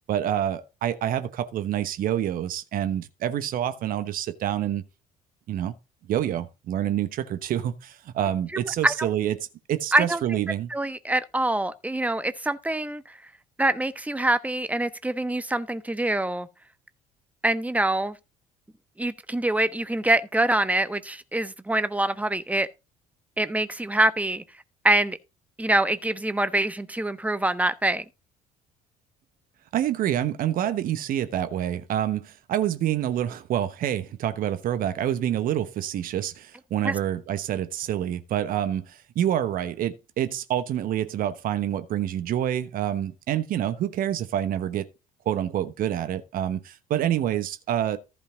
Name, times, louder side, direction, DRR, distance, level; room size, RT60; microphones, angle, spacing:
voice 1, 0.1-4.8 5.5-5.7 6.1-9.4 9.7-10.7 29.7-44.9 45.2-48.0, right 11 dB, 50° right, 1.1 m, -27 dB
voice 2, 8.5-9.1 9.9-10.4 10.7-13.0 13.6-16.5 17.4-18.2 19.0-22.7 23.4-24.4 24.8-25.2 25.6-28.0 36.8-36.9, right 1 dB, 10° right, 1.1 m, -25 dB
14.5 x 5.2 x 3.9 m
figure-of-eight pair, 55°, 18 cm